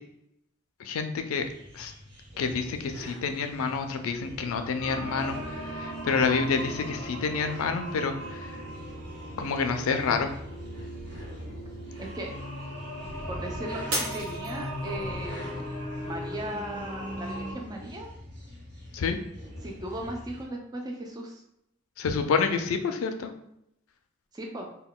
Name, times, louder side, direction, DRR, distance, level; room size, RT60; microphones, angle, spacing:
voice 1, 0.8-1.4 1.7-1.9 2.4-8.6 9.4-10.3 18.9-19.2 22.0-23.3, left 5 dB, 80° left, 7 dB, 0.4 m, -28 dB
sound 1, 1.4-20.4, equal, 50° right, 1.0 m, -45 dB
sound 2, 4.8-17.5, equal, 70° right, 1.1 m, -38 dB
voice 2, 12.0-12.3 13.3-15.7 16.0-18.1 19.6-21.4 24.3-24.7, right 1 dB, 20° right, 1 dB, 0.3 m, -37 dB
Shatter, 13.9-15.2 15.7-16.2 16.7-16.8, right 1 dB, 90° right, 0.9 m, -33 dB
2.2 x 2.2 x 3.6 m, 0.79 s
head